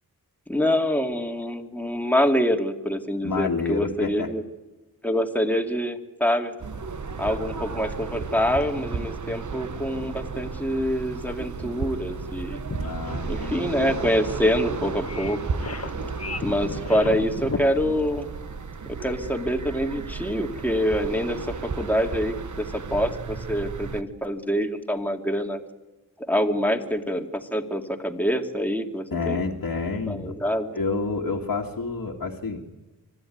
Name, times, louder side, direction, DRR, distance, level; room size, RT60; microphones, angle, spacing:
voice 1, 0.5-4.4 5.0-6.5 7.2-12.6 13.3-15.4 16.4-18.3 19.0-25.6 26.3-29.4 30.1-30.7, equal, 5° left, 3 dB, 2.5 m, -25 dB
voice 2, 3.2-4.3 12.7-14.0 29.1-30.4 30.7-32.6, left 4 dB, 65° left, -1 dB, 2.2 m, -29 dB
sound 1, 6.6-24.0, right 5 dB, 50° right, 1.2 m, -34 dB
sound 2, 12.1-17.6, left 4 dB, 40° left, 1.5 m, -35 dB
25.5 x 13.5 x 9.4 m, 1.1 s
wide cardioid pair, 80°, 37 cm